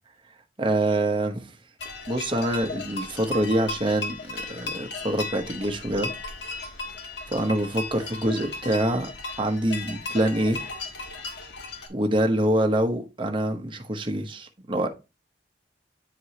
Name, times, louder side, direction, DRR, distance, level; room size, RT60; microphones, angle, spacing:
voice 1, 0.6-1.5 2.1-6.1 7.3-9.1 9.4-10.6 11.9-14.9, right 1 dB, 30° right, 1.0 m, -25 dB
sound 1, 1.8-11.9, left 3 dB, 75° left, 1.5 m, -36 dB
9.2 x 4.7 x 2.8 m
head